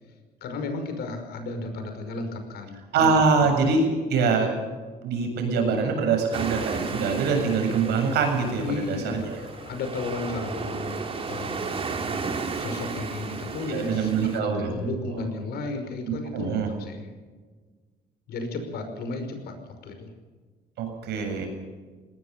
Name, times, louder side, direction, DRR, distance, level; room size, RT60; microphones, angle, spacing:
voice 1, 0.4-3.1 8.6-11.9 12.6-17.1 18.3-19.5 19.8-20.1, left 3 dB, 70° left, 6 dB, 5.5 m, -34 dB
voice 2, 2.9-4.5 5.0-9.4 13.6-14.7 16.1-16.7 20.8-21.5, right 4 dB, 80° right, 4 dB, 7.7 m, -24 dB
sound 1, 6.3-14.4, right 4 dB, 35° right, 3.2 m, -33 dB
20.5 x 18.5 x 6.9 m, 1.4 s
cardioid pair, 110°, 17 cm